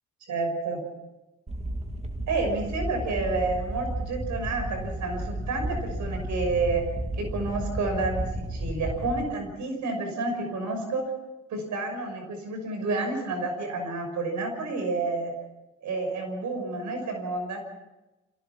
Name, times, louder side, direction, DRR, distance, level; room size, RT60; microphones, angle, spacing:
voice 1, 0.3-0.8 2.3-6.9 7.2-11.1 11.5-15.4 15.8-17.6, right 3 dB, 70° right, 4 dB, 6.2 m, -30 dB
sound 1, 1.5-9.2, right 1 dB, 20° right, 2.2 m, -33 dB
28.0 x 16.5 x 6.0 m, 1.0 s
cardioid pair, 90°, 30 cm